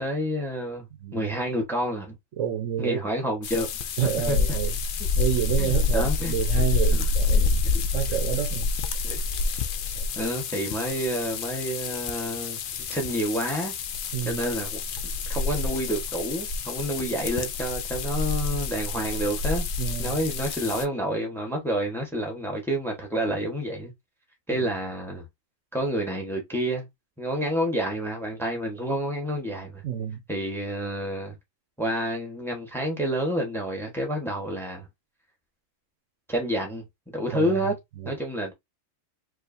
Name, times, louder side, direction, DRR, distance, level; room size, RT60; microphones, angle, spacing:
voice 1, 0.0-0.9 1.1-2.2 2.8-3.7 4.0-4.4 5.6-6.3 6.9-7.0 7.3-7.9 9.0-9.2 10.2-12.6 12.9-13.7 14.2-14.8 15.2-19.7 20.0-23.9 24.5-25.2 25.7-26.9 27.2-29.8 30.3-31.3 31.8-34.9 36.3-36.8 37.1-37.7 38.0-38.5, equal, ahead, 1.0 m, -29 dB
voice 2, 2.4-3.0 4.0-4.8 5.2-7.7 7.9-8.7 9.9-10.0 14.1-14.4 19.8-20.2 29.8-30.2 37.3-37.5 38.0-38.1, right 9 dB, 70° right, 1.1 m, -29 dB
sound 1, 3.4-20.8, left 4 dB, 60° left, 0.5 m, -28 dB
4.9 x 2.8 x 2.6 m
omnidirectional pair, 1.4 m